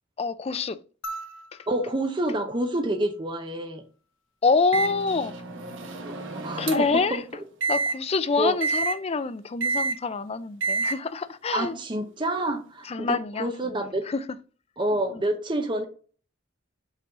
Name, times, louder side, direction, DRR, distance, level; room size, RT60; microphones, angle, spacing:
voice 1, 0.2-0.8 1.5-1.7 4.4-5.4 6.6-7.2 7.7-11.7 12.8-14.3 15.1-15.2, left 4 dB, 30° left, 0.4 m, -26 dB
sound 1, 1.0-3.6 5.2-5.3, right 2 dB, 70° left, 0.8 m, -42 dB
voice 2, 1.7-3.8 6.0-6.7 7.1-7.2 8.4-8.6 11.5-14.0 14.8-15.8, right 1 dB, 25° right, 0.7 m, -28 dB
Microwave oven, 4.7-7.0 7.6-7.9 8.6-8.9 9.6-10.0 10.6-10.9, right 3 dB, 70° right, 1.2 m, -28 dB
5.6 x 4.0 x 4.7 m
head